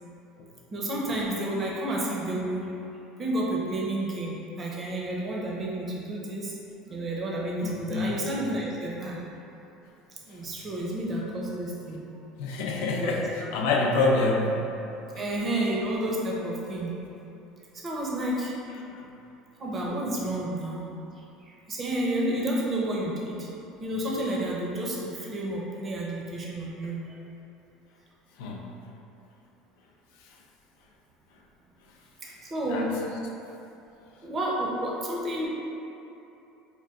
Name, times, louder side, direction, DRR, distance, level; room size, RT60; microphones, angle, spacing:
voice 1, 0.7-2.7 3.2-6.5 6.9-9.2 10.3-12.0 13.0-13.3 15.2-16.9 17.8-18.5 19.6-20.9 21.2-23.5 23.8-27.2 32.2-32.9 34.2-35.5, right 1 dB, 30° right, -3 dB, 0.8 m, -30 dB
voice 2, 7.6-8.2 12.4-14.7 28.4-28.7 32.7-32.9, left 3 dB, 80° left, -1 dB, 0.5 m, -26 dB
4.4 x 2.2 x 3.6 m, 2.9 s
supercardioid pair, 115°, 0 cm